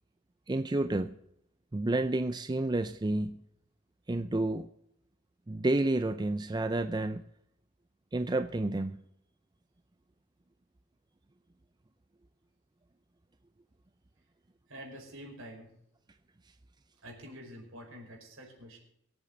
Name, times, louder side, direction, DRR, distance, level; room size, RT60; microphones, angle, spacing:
voice 1, 0.5-1.1 1.7-3.4 4.1-4.7 5.5-7.2 8.1-9.0, right 2 dB, 20° right, 10 dB, 0.4 m, -30 dB
voice 2, 14.7-15.7 17.0-18.8, equal, 70° right, 0 dB, 5.2 m, -47 dB
24.0 x 8.5 x 3.9 m, 0.75 s
head